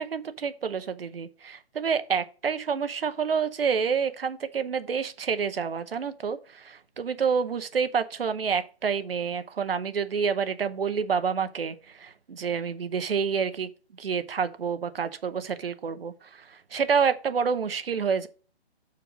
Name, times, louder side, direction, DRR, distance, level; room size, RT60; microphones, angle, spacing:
voice 1, 0.0-13.7 14.0-18.3, right 6 dB, 60° right, 1.0 m, -28 dB
7.3 x 4.5 x 5.0 m
hypercardioid pair, 165°, 33 cm